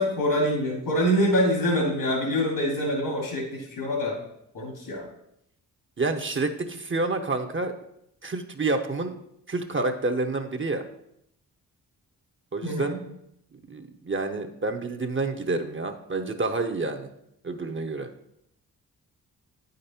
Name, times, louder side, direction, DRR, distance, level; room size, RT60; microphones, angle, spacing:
voice 1, 0.0-4.2 4.5-5.0 12.6-13.0, equal, 75° left, -2 dB, 2.5 m, -25 dB
voice 2, 6.0-7.7 8.2-9.2 9.5-10.8 12.5-13.0 13.7-17.1 17.4-18.1, right 3 dB, 30° right, 5 dB, 1.0 m, -28 dB
8.7 x 5.3 x 4.3 m, 0.76 s
supercardioid pair, 45°, 37 cm